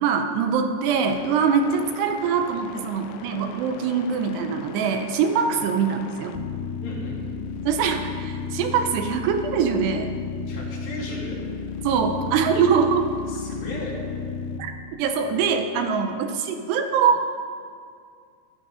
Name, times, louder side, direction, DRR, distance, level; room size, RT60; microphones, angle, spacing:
voice 1, 0.0-6.4 7.6-10.1 11.8-13.1 14.6-14.7 15.0-17.2, right 6 dB, 80° right, 6 dB, 2.7 m, -23 dB
sound 1, 0.9-14.6, left 6 dB, 90° left, 2.2 m, -34 dB
voice 2, 6.8-7.4 10.5-11.4 12.5-12.7 13.3-14.0, left 2 dB, 70° left, -3 dB, 4.6 m, -35 dB
14.0 x 12.5 x 5.0 m, 2.2 s
omnidirectional pair, 5.1 m